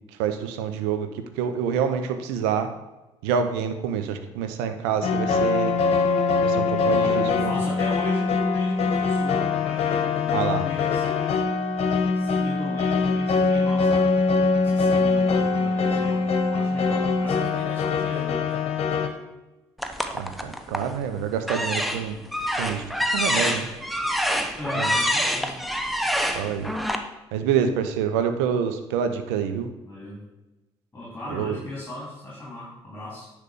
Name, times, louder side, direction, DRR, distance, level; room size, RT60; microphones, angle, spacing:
voice 1, 0.2-1.1 1.4-2.7 3.2-5.7 6.4-7.5 10.3-10.7 20.1-22.2 22.6-22.8 23.1-23.7 24.8-24.9 26.3-26.7 27.3-29.7 31.3-31.6, right 7 dB, 70° right, 8 dB, 0.8 m, -27 dB
sound 1, 5.0-19.1, left 4 dB, 50° left, 1.1 m, -23 dB
voice 2, 6.9-11.4 12.1-14.1 14.6-18.6 24.5-25.6 29.9-30.2 30.9-33.3, left 1 dB, 15° left, -7 dB, 3.3 m, -37 dB
Sonic Snap Sint-Laurens, 19.8-20.9 21.4-27.0, equal, ahead, 0.9 m, -26 dB
9.9 x 3.4 x 6.6 m, 1.0 s
figure-of-eight pair, 45°, 14 cm